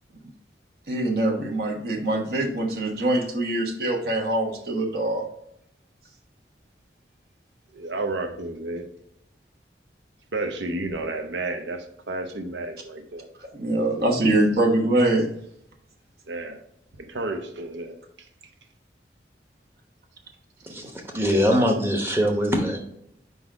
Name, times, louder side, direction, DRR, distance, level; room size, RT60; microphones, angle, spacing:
voice 1, 0.9-5.3 13.4-15.3, right 1 dB, 55° right, 0 dB, 1.1 m, -23 dB
voice 2, 7.7-8.9 10.3-13.3 16.3-16.6 17.0-17.9 21.3-21.5, right 2 dB, 85° right, 7 dB, 0.8 m, -31 dB
voice 3, 20.7-22.8, equal, 15° right, 2 dB, 0.9 m, -22 dB
4.9 x 4.0 x 4.8 m, 0.75 s
head